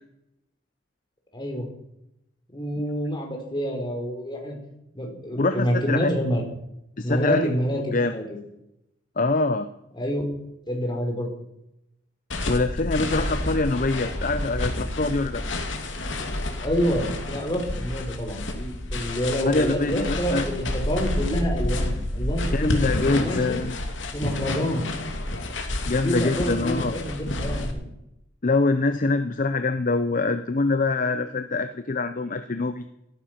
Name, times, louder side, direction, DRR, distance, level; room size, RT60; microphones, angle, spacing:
voice 1, 1.3-1.7 2.5-4.6 4.9-6.4 7.0-8.4 9.9-10.2 10.7-11.3 16.6-23.6 24.1-24.9 25.9-27.9, equal, 25° left, 2 dB, 4.4 m, -28 dB
voice 2, 5.4-6.1 7.0-7.5 7.9-8.1 9.2-9.7 12.5-15.4 19.4-20.4 22.5-23.7 25.9-26.9 28.4-32.9, left 3 dB, 45° left, 10 dB, 0.7 m, -24 dB
sound 1, 12.3-27.7, left 1 dB, 75° left, 2.7 m, -29 dB
16.5 x 14.0 x 5.9 m, 0.84 s
head